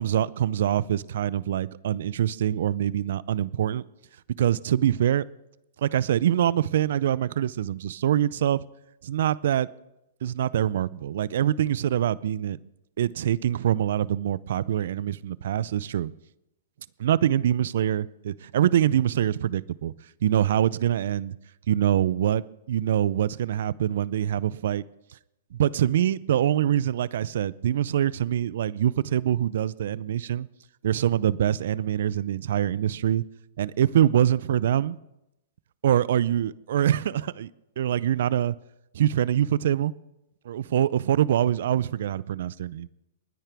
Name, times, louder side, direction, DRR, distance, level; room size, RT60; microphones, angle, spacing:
voice 1, 0.0-3.8 4.4-5.2 5.8-8.6 9.0-9.7 10.2-12.6 13.0-16.1 17.0-19.9 20.2-21.4 21.7-22.4 22.7-24.8 25.6-30.5 30.8-33.2 33.6-35.0 35.8-37.5 37.8-38.5 38.9-39.9 40.5-42.9, right 10 dB, 65° right, 21 dB, 0.5 m, -24 dB
30.0 x 10.0 x 3.5 m, 0.90 s
hypercardioid pair, 120°, 0 cm